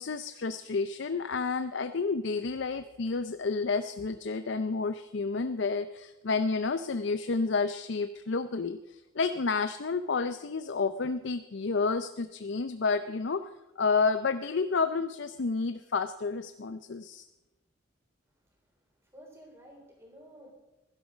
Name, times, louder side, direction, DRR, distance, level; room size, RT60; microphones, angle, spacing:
voice 1, 0.0-13.4 13.8-17.3, left 4 dB, 65° left, 10 dB, 0.5 m, -30 dB
voice 2, 18.4-20.5, equal, 15° right, 1 dB, 3.8 m, -53 dB
15.5 x 12.0 x 5.1 m, 1.0 s
head